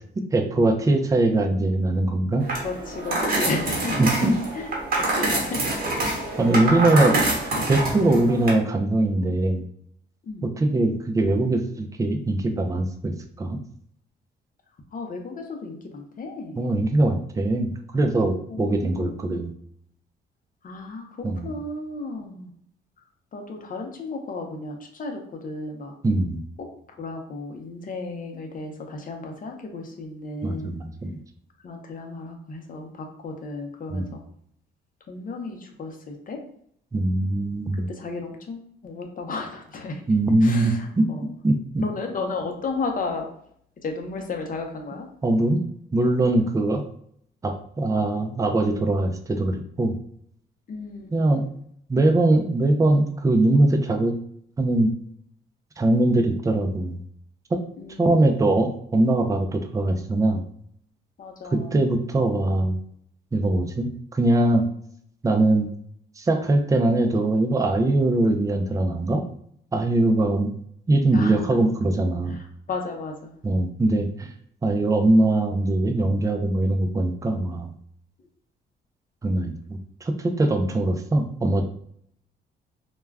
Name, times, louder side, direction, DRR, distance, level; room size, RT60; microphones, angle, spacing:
voice 1, 0.2-2.5 4.0-4.3 6.4-7.2 7.7-9.7 10.4-13.6 16.6-19.5 21.2-21.5 26.0-26.4 30.4-31.2 33.9-34.1 36.9-37.9 40.1-41.0 41.4-41.8 45.2-45.6 45.9-46.8 47.4-49.9 51.1-51.5 51.9-54.1 54.6-54.9 55.8-57.0 57.5-57.6 58.0-60.4 61.5-62.8 63.3-64.7 65.2-65.7 66.2-69.2 69.7-70.5 70.9-72.4 73.4-74.3 74.6-77.7 79.2-81.6, right 2 dB, 15° right, 5 dB, 0.4 m, -22 dB
sound 1, 2.4-8.5, right 2 dB, 50° right, 1.0 m, -26 dB
voice 2, 2.6-4.0 4.5-4.7 5.0-5.6 6.0-6.2 6.7-7.1 7.5-7.9 10.2-10.4 14.9-16.6 18.5-19.5 20.6-22.5 23.3-25.9 26.6-30.8 31.6-34.2 35.1-36.4 37.7-40.0 40.4-41.3 41.8-43.3 43.8-45.1 50.7-51.5 57.8-58.1 61.2-61.9 65.5-65.6 71.1-71.6 72.3-73.3, left 3 dB, 45° left, 3 dB, 0.6 m, -34 dB
2.3 x 2.2 x 3.3 m, 0.65 s
cardioid pair, 90°, 20 cm